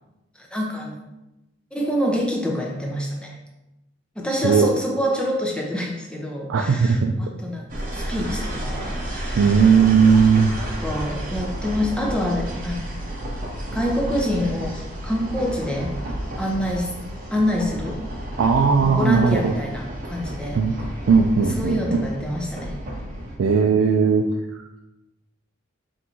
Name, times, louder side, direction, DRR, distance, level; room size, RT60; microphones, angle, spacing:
voice 1, 0.4-1.0 1.7-3.4 4.2-7.6 7.9-9.8 10.0-10.1 10.6-12.8 13.7-15.9 16.4-16.9 17.3-18.0 18.8-20.6 21.6-22.7, equal, 5° left, -1 dB, 0.6 m, -26 dB
voice 2, 4.3-4.7 6.5-7.1 9.4-10.5 18.4-19.5 20.6-20.8 21.1-22.1 23.4-24.6, right 5 dB, 90° right, 2 dB, 0.3 m, -18 dB
sound 1, 7.7-23.4, right 1 dB, 45° right, 0.9 m, -31 dB
3.7 x 2.6 x 4.4 m, 0.96 s
head